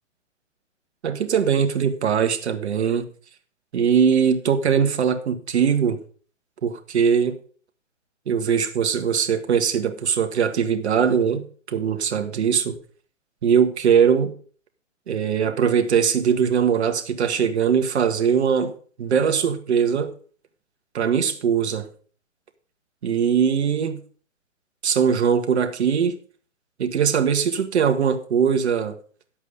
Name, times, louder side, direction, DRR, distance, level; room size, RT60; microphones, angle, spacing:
voice 1, 1.0-3.1 3.7-6.0 6.6-7.4 8.3-12.8 13.4-14.3 15.1-18.7 19.0-20.1 20.9-21.9 23.0-24.0 24.8-26.2 26.8-28.9, right 7 dB, 55° right, 1.7 m, -21 dB
11.5 x 8.1 x 5.1 m
hypercardioid pair, 150°, 39 cm